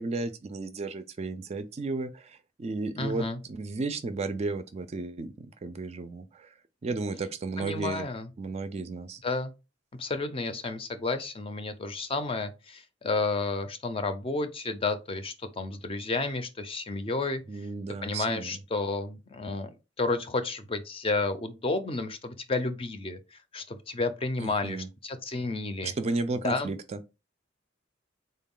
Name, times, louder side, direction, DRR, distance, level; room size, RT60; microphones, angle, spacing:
voice 1, 0.0-6.5 6.8-8.1 8.4-9.2 17.5-18.6 24.4-24.9 25.8-27.0, right 3 dB, 35° right, 0.3 m, -33 dB
voice 2, 3.0-3.4 7.6-8.3 9.2-9.5 9.9-17.4 18.0-19.7 20.0-25.9 26.4-26.7, left 3 dB, 30° left, 0.5 m, -31 dB
3.8 x 2.2 x 3.6 m
head